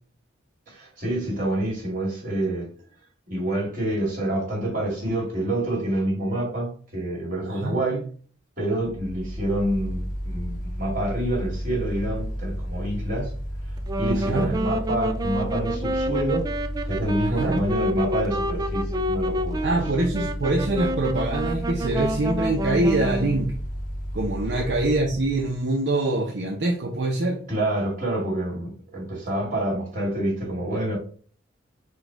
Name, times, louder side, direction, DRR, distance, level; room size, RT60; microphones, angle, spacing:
voice 1, 0.7-2.7 3.3-8.1 8.6-13.3 14.0-16.5 16.8-19.7 27.5-31.0, right 1 dB, 45° right, 2.3 m, -27 dB
voice 2, 7.5-7.8 14.1-14.5 17.2-17.6 19.6-23.6 24.1-27.4, right 2 dB, 65° right, 0.6 m, -24 dB
Mechanical fan, 8.8-25.6, equal, 40° left, 0.7 m, -32 dB
Wind instrument woodwind instrument, 13.8-23.5, equal, 20° right, 0.3 m, -28 dB
4.6 x 2.3 x 4.5 m
head